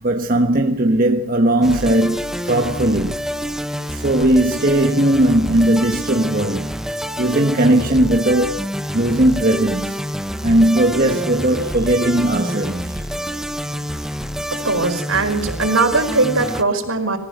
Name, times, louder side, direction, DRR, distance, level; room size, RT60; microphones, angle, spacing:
voice 1, 0.0-3.2 3.9-6.7 7.2-8.7 8.9-10.0 10.4-13.0, right 1 dB, 40° right, 1.4 m, -17 dB
sound 1, 1.6-16.6, equal, ahead, 0.8 m, -27 dB
voice 2, 14.5-17.2, right 3 dB, 65° right, 4.8 m, -19 dB
26.0 x 15.5 x 8.1 m
head